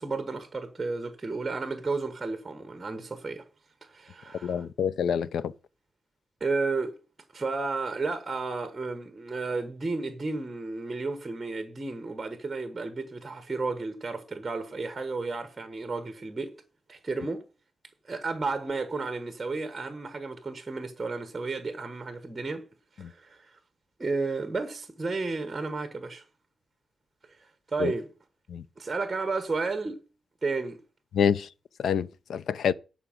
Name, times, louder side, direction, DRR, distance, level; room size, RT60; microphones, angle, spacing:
voice 1, 0.0-3.4 3.9-4.7 6.4-7.0 7.3-16.5 16.9-17.4 18.1-22.6 23.0-23.5 24.0-26.2 27.7-28.1 28.8-30.0 30.4-30.8, right 3 dB, 20° right, 1.2 m, -32 dB
voice 2, 4.4-5.5 27.8-27.9 28.5-28.6 31.1-31.5 31.8-32.7, left 7 dB, 80° left, 0.5 m, -26 dB
11.0 x 5.0 x 7.6 m
wide cardioid pair, 165°, 0 cm